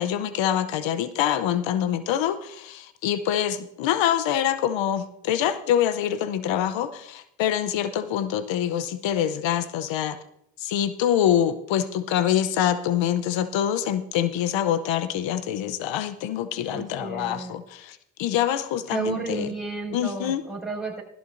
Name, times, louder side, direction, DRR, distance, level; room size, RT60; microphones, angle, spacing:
voice 1, 0.0-10.2 10.6-19.5 19.9-20.4, left 10 dB, 80° left, 14 dB, 0.8 m, -25 dB
voice 2, 16.7-17.5 18.9-21.0, right 3 dB, ahead, -2 dB, 5.7 m, -32 dB
16.5 x 13.5 x 2.6 m, 0.74 s
supercardioid pair, 50°, 44 cm